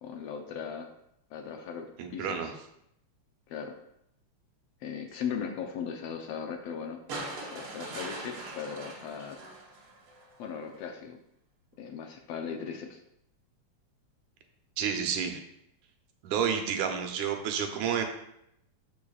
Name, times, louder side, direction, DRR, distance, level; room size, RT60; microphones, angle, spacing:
voice 1, 0.0-0.9 1.3-2.5 3.5-3.7 4.8-7.0 7.5-9.4 10.4-11.2 11.8-13.0, left 7 dB, 80° left, 4 dB, 1.5 m, -38 dB
voice 2, 2.0-2.5 14.8-15.4 16.2-18.0, right 7 dB, 85° right, 4 dB, 2.2 m, -30 dB
sound 1, 7.1-10.4 11.7-11.8, right 2 dB, 60° right, 1.6 m, -41 dB
12.5 x 4.7 x 2.4 m, 0.78 s
omnidirectional pair, 3.4 m